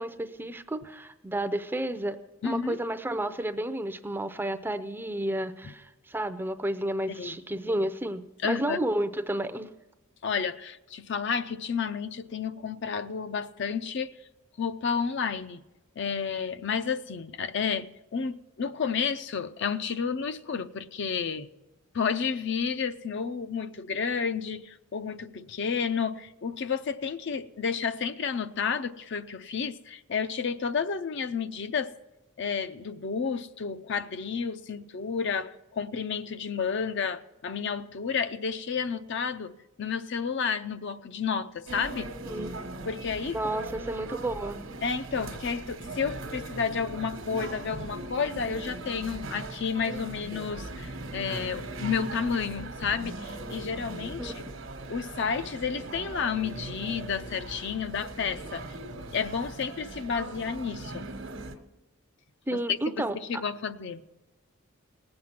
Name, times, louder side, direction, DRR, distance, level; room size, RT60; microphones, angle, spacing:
voice 1, 0.0-2.2 2.4-9.7 42.3-42.5 43.3-44.6 54.2-54.3 62.5-63.4, right 1 dB, 10° right, 0.5 m, -31 dB
voice 2, 2.4-2.8 5.6-5.7 7.2-7.4 8.4-8.8 10.2-14.2 14.6-15.6 16.0-21.5 21.9-31.9 32.4-42.1 42.9-43.4 44.8-54.4 54.9-58.7 59.1-61.1 62.5-64.0, left 6 dB, 60° left, 0.5 m, -31 dB
sound 1, 41.7-61.6, right 2 dB, 70° right, 1.1 m, -39 dB
18.5 x 7.8 x 5.9 m
head